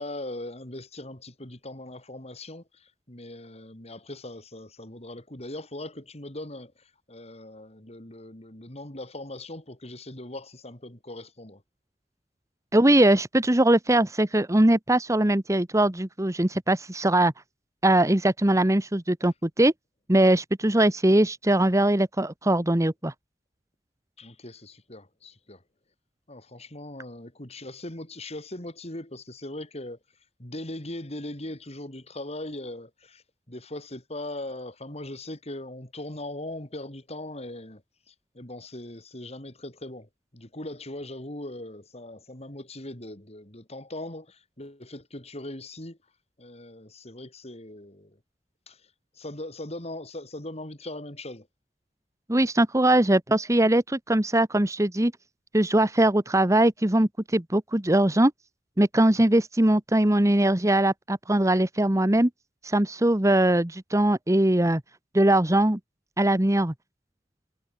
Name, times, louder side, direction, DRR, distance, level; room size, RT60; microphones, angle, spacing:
voice 1, 0.0-11.6 24.2-25.6 26.3-30.0 30.4-37.8 38.1-46.0 46.4-48.2 48.7-48.8 49.2-51.5, left 1 dB, 35° left, 4.6 m, -40 dB
voice 2, 12.7-17.3 17.8-19.7 20.1-23.1 52.3-55.1 55.5-58.3 58.8-62.3 62.6-64.8 65.1-65.8 66.2-66.7, right 1 dB, 20° right, 1.2 m, -21 dB
head